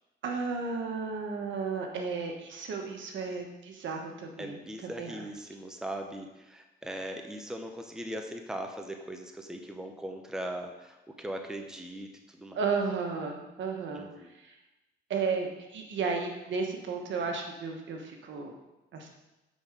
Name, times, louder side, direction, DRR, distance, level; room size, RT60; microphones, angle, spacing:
voice 1, 0.2-5.3 12.5-14.1 14.4-14.5 15.1-18.5 18.9-19.1, right 5 dB, 70° right, 2 dB, 1.3 m, -33 dB
voice 2, 4.4-12.6 13.9-14.3, right 1 dB, 5° right, 3 dB, 0.9 m, -39 dB
9.4 x 4.3 x 5.0 m, 1.0 s
cardioid pair, 90°, 20 cm